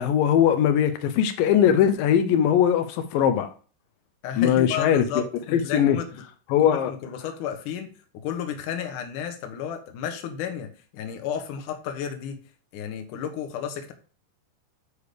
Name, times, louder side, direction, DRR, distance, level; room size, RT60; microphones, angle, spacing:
voice 1, 0.0-3.5 4.4-5.2 5.5-6.0 6.5-7.0, left 9 dB, 85° left, 1.9 m, -20 dB
voice 2, 4.2-6.1 6.7-7.9 8.2-10.7 10.9-12.4 12.7-13.9, left 8 dB, 65° left, 2.1 m, -32 dB
8.5 x 4.9 x 6.7 m
omnidirectional pair, 5.0 m